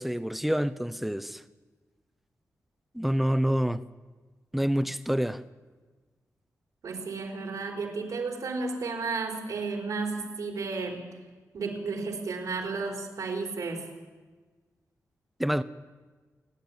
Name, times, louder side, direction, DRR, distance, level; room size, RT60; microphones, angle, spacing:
voice 1, 0.0-1.4 2.9-3.8 4.5-5.4 15.4-15.6, equal, ahead, 0.7 m, -27 dB
voice 2, 6.8-11.0 11.5-13.9, right 4 dB, 80° right, 4.4 m, -33 dB
28.5 x 11.5 x 8.9 m
wide cardioid pair, 135°, 6 cm